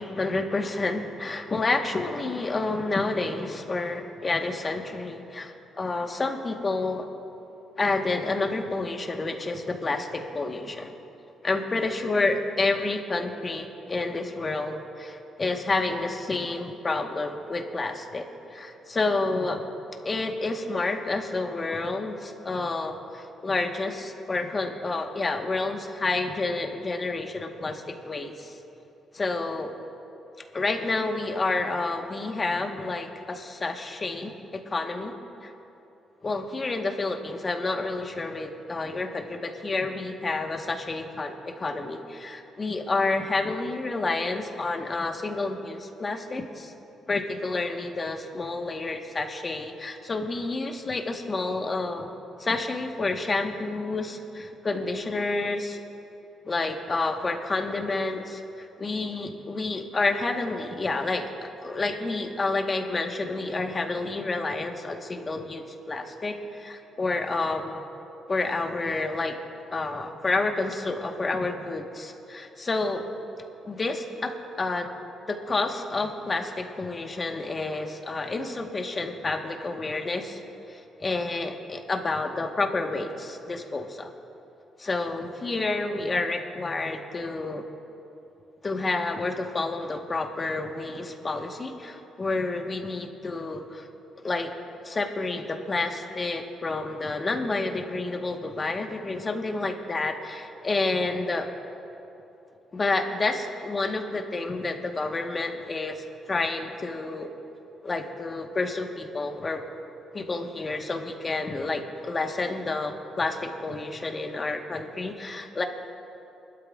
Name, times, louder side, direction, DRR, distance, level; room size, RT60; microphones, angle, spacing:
voice 1, 0.0-7.1 7.8-11.0 11.4-18.3 18.5-19.6 20.0-28.6 29.1-29.7 30.5-35.1 35.4-35.5 36.2-46.7 47.1-52.1 52.4-55.8 56.4-67.8 68.3-69.4 69.7-73.0 73.7-74.3 74.6-74.9 75.3-80.4 80.7-84.1 84.8-87.6 88.6-93.9 94.2-94.5 94.8-101.5 102.7-107.3 107.8-109.6 110.1-115.6, left 3 dB, 30° left, 4 dB, 1.3 m, -29 dB
23.0 x 12.5 x 2.4 m, 2.9 s
cardioid pair, 90°, 0 cm